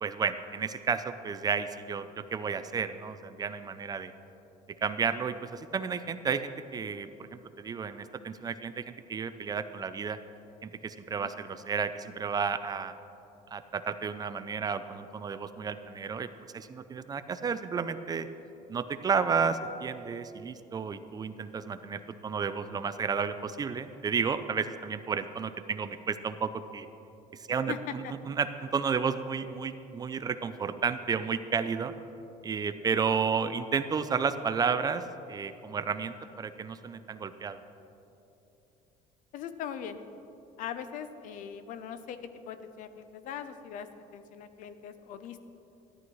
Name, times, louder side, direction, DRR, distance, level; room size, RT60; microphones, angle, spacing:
voice 1, 0.0-4.1 4.8-10.2 10.6-12.9 13.5-18.3 18.7-26.9 27.5-31.9 32.4-35.0 35.3-37.6, right 6 dB, 25° right, 12 dB, 0.4 m, -32 dB
voice 2, 27.5-28.1 39.3-40.0 40.6-45.4, left 8 dB, 65° left, 11 dB, 0.7 m, -41 dB
14.0 x 11.0 x 3.1 m, 2.9 s
cardioid pair, 120°, 14 cm